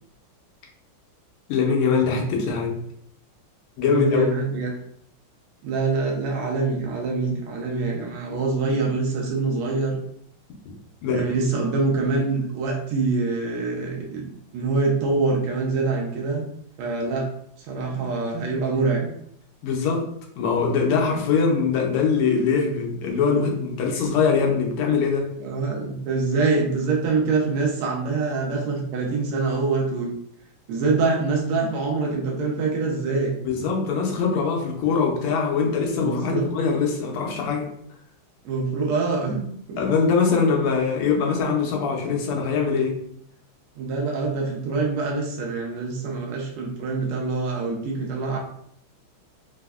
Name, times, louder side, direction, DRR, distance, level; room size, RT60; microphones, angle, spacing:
voice 1, 1.5-2.8 3.8-4.3 11.0-11.3 19.6-25.3 33.4-37.7 39.8-43.0, left 5 dB, 85° left, 1 dB, 1.6 m, -22 dB
voice 2, 3.8-4.7 5.6-10.0 11.1-16.5 16.8-17.3 17.6-19.1 25.4-30.1 30.7-33.3 36.0-36.5 38.4-39.8 43.8-48.4, right 3 dB, 90° right, -1 dB, 1.6 m, -25 dB
4.3 x 2.0 x 2.3 m, 0.69 s
omnidirectional pair, 2.4 m